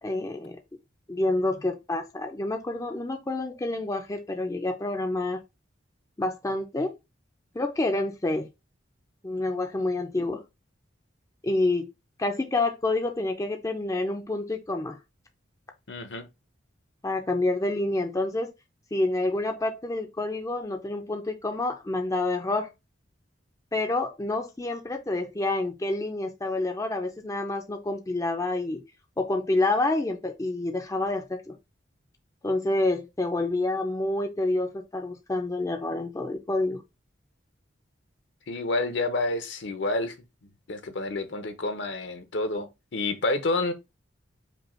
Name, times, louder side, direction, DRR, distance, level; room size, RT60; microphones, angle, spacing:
voice 1, 0.0-0.6 1.1-5.4 6.2-6.9 7.5-8.5 9.2-10.4 11.4-11.9 12.2-15.0 17.0-18.5 18.9-22.7 23.7-28.8 29.2-31.5 32.4-36.8, left 2 dB, 15° left, 0.5 m, -28 dB
voice 2, 15.9-16.3 38.5-40.1 40.7-43.7, left 2 dB, 65° left, 0.8 m, -29 dB
5.3 x 2.3 x 4.3 m
head